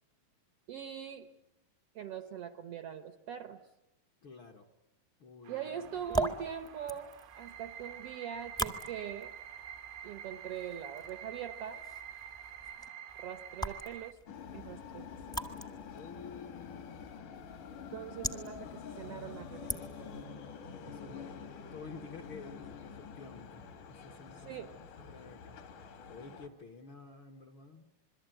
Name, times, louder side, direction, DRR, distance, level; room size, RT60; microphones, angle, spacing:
voice 1, 0.7-1.3 1.9-3.6 5.5-9.3 10.0-11.8 13.2-14.2 14.5-15.4 17.9-19.7 24.4-24.7, right 9 dB, 65° right, 9 dB, 1.6 m, -42 dB
voice 2, 4.2-4.7 5.2-6.0 15.9-17.5 20.8-21.3 21.7-27.9, left 4 dB, 50° left, 3 dB, 1.6 m, -51 dB
sound 1, 5.5-14.1, right 9 dB, 85° right, 2.8 m, -48 dB
sound 2, 5.8-20.2, right 2 dB, 5° left, 0.6 m, -42 dB
sound 3, 14.3-26.5, left 6 dB, 65° left, 3.7 m, -47 dB
27.5 x 22.5 x 9.1 m, 0.93 s
omnidirectional pair, 3.9 m